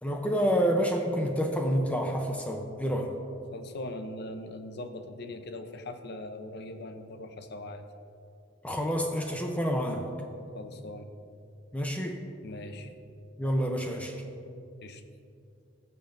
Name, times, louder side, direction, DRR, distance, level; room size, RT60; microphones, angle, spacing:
voice 1, 0.0-3.1 8.6-10.1 11.7-12.2 13.4-14.2, equal, 5° left, 2 dB, 0.6 m, -28 dB
voice 2, 3.5-7.8 10.5-11.1 12.4-12.9 14.8-15.0, left 2 dB, 60° left, 7 dB, 0.7 m, -40 dB
19.5 x 6.8 x 2.6 m, 2.6 s
head